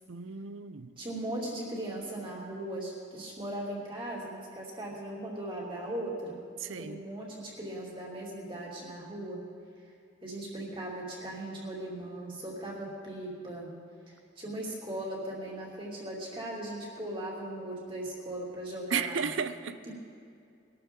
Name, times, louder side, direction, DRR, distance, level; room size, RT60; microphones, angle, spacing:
voice 1, 0.1-1.0 6.6-7.0 18.9-19.8, right 6 dB, 85° right, 12 dB, 0.6 m, -34 dB
voice 2, 1.0-6.4 6.8-9.4 10.2-13.7 14.1-19.3 19.8-19.9, right 1 dB, 25° right, -4 dB, 2.7 m, -38 dB
21.0 x 12.5 x 3.8 m, 2.4 s
head